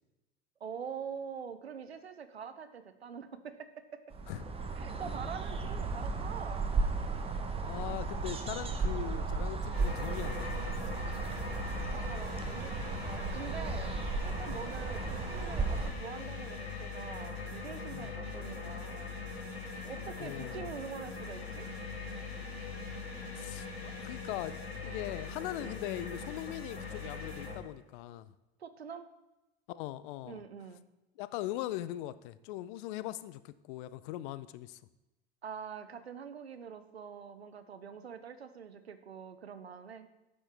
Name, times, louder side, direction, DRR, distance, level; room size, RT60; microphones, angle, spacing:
voice 1, 0.6-4.1 4.8-6.7 11.9-13.9 14.2-19.1 19.8-21.7 25.6-25.8 28.6-29.0 30.2-30.8 35.4-40.1, right 6 dB, 90° right, 11 dB, 0.6 m, -45 dB
sound 1, 4.1-15.9, right 4 dB, 20° right, 1.0 m, -35 dB
voice 2, 7.6-11.0 14.5-14.7 17.9-18.1 20.2-20.7 23.3-23.7 24.0-24.6 24.8-28.3 29.7-30.4 31.2-34.8, left 14 dB, 55° left, 16 dB, 0.5 m, -40 dB
sound 2, 9.7-27.6, left 4 dB, 85° left, 1.6 m, -41 dB
9.9 x 7.3 x 3.3 m, 0.99 s
figure-of-eight pair, 75°, 31 cm